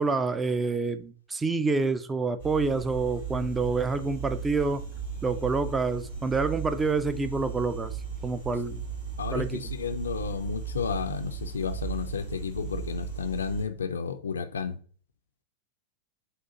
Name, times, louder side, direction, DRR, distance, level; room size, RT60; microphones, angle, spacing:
voice 1, 0.0-4.8 5.2-7.9 8.2-8.8 9.3-9.7, right 4 dB, 15° right, 0.4 m, -27 dB
sound 1, 2.4-13.6, right 6 dB, 75° right, 2.1 m, -37 dB
voice 2, 9.2-14.8, left 6 dB, 70° left, 0.4 m, -32 dB
6.5 x 2.5 x 2.8 m
figure-of-eight pair, 90°, 0 cm